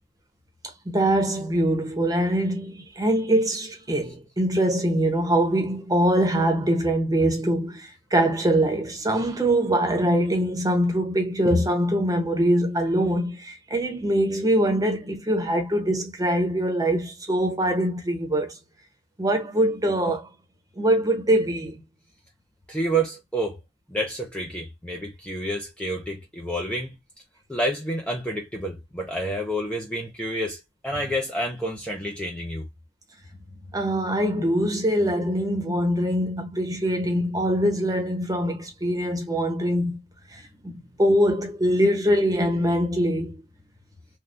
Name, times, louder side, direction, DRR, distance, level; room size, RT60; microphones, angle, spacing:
voice 1, 0.9-18.5 19.2-20.3 20.8-21.8 33.7-40.0 40.3-43.4, right 1 dB, 20° right, 0.9 m, -23 dB
voice 2, 22.7-23.6 23.9-27.0 27.5-32.7, right 1 dB, 5° left, 0.5 m, -29 dB
3.4 x 2.2 x 2.6 m
head